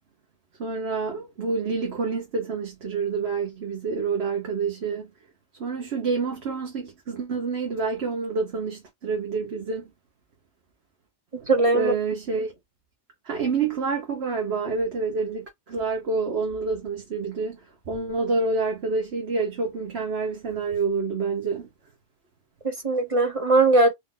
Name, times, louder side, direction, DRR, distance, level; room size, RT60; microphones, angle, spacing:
voice 1, 0.6-5.1 5.6-9.9 11.7-12.5 13.2-17.6 17.9-21.7, right 4 dB, 65° right, 1.4 m, -28 dB
voice 2, 11.5-11.9 22.6-23.9, right 2 dB, 35° right, 0.6 m, -20 dB
4.3 x 2.6 x 3.8 m
omnidirectional pair, 1.2 m